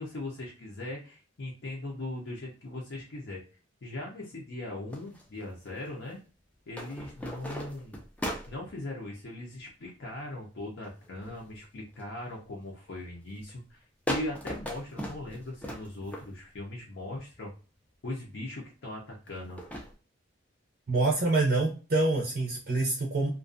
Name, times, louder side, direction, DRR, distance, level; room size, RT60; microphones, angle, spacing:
voice 1, 0.0-3.4 3.8-6.2 6.7-8.0 8.5-13.8 14.1-17.5 18.0-19.6, left 1 dB, 65° left, -2 dB, 0.6 m, -39 dB
sound 1, 4.9-5.9 6.7-8.8 10.8-11.5 11.9-12.4 12.9-13.2 13.5-13.6 14.1-16.6 17.3-17.4 19.3-19.9, equal, 5° left, 0.3 m, -38 dB
voice 2, 20.9-23.3, right 2 dB, 50° right, -1 dB, 0.5 m, -26 dB
2.4 x 2.2 x 2.4 m, 0.36 s
head